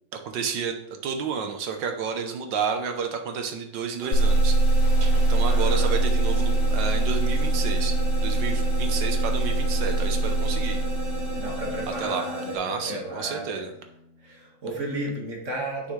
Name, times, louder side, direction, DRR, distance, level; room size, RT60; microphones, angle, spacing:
voice 1, 0.3-8.0 8.2-10.8 11.9-13.7, right 6 dB, 90° right, 5 dB, 1.6 m, -31 dB
sound 1, 4.0-12.6, left 1 dB, 65° right, 3.4 m, -35 dB
sound 2, 4.1-11.9, right 2 dB, 65° left, 1.1 m, -23 dB
sound 3, 4.8-14.6, equal, 45° left, 1.6 m, -43 dB
voice 2, 5.5-6.0 11.3-13.6 14.2-15.9, right 1 dB, 45° right, -1 dB, 2.0 m, -34 dB
9.6 x 6.1 x 3.2 m, 0.78 s
omnidirectional pair, 1.9 m